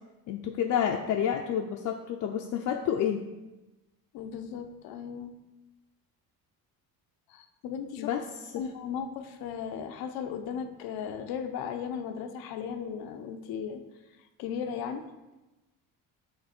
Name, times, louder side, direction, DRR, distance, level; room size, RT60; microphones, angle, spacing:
voice 1, 0.3-3.2 8.0-8.2 8.5-8.6, left 9 dB, 55° left, 2 dB, 0.5 m, -29 dB
voice 2, 4.1-5.3 7.3-8.1 8.6-13.8 14.4-15.0, left 7 dB, 85° left, 7 dB, 0.7 m, -36 dB
6.7 x 3.9 x 4.3 m, 1.0 s
cardioid pair, 125°, 36 cm